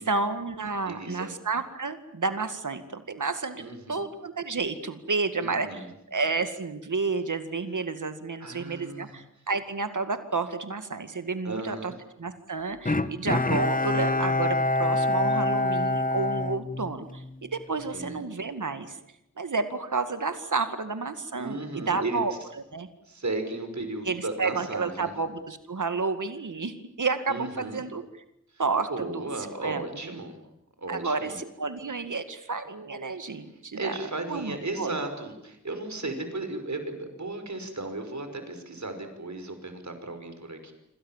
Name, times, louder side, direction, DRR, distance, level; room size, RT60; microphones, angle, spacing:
voice 1, 0.0-3.6 3.9-11.9 12.2-19.0 19.4-22.3 22.7-22.9 24.0-28.0 28.6-29.2 29.6-30.1 30.9-33.9 34.3-34.9, right 4 dB, 85° right, 9 dB, 2.2 m, -31 dB
voice 2, 0.9-1.3 3.6-4.0 5.4-5.9 8.4-9.2 11.4-11.9 17.9-18.2 21.4-22.2 23.0-25.1 27.3-27.8 28.5-28.6 28.9-30.4 30.8-31.4 33.2-33.4 33.7-40.7, right 2 dB, 65° right, 7 dB, 5.7 m, -35 dB
Bowed string instrument, 12.9-17.4 17.8-17.9, left 2 dB, 25° left, 1.3 m, -26 dB
26.5 x 26.5 x 7.4 m, 0.81 s
wide cardioid pair, 60°, 30 cm